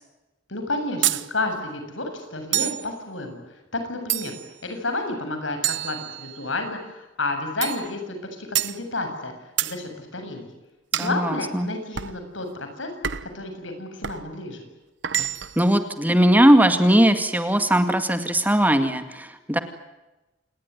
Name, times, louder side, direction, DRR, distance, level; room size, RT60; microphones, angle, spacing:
voice 1, 0.5-4.4 4.6-9.3 9.6-10.5 10.9-12.9 13.2-14.6, left 2 dB, 85° left, 6 dB, 7.5 m, -31 dB
sound 1, 1.0-1.3 2.5-2.9 4.1-4.5 5.6-6.5 7.6-7.9 8.5-8.8 9.6-9.8 10.9-11.2 12.0-12.2 13.0-13.4 14.0-14.2 15.0-15.6, right 12 dB, 65° right, 1.1 m, -27 dB
voice 2, 11.0-11.7 15.6-19.6, right 1 dB, 10° right, 8 dB, 2.1 m, -19 dB
28.0 x 20.0 x 9.6 m, 1.0 s
head